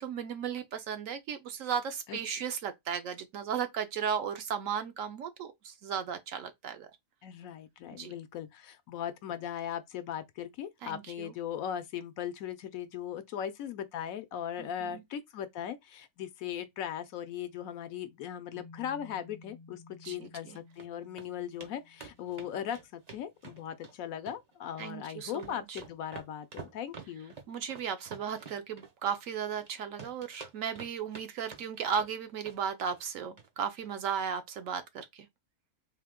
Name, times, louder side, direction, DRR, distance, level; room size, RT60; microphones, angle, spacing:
voice 1, 0.0-6.9 7.9-8.1 10.8-11.3 14.6-15.0 20.0-20.6 24.8-25.8 27.5-35.3, right 7 dB, 70° right, 0.9 m, -35 dB
voice 2, 7.2-27.3, left 9 dB, 70° left, 1.0 m, -38 dB
sound 1, 18.5-22.8, left 3 dB, 25° left, 0.5 m, -54 dB
sound 2, 20.3-20.9 21.2-21.3 21.6-21.7 22.0-24.0 24.3-24.9 25.2-29.7 30.0-31.3 31.5-32.1 32.4-32.6 32.9-33.1 33.4-33.5 33.8-33.9, right 5 dB, 40° right, 0.6 m, -48 dB
3.4 x 2.7 x 3.6 m
omnidirectional pair, 1.6 m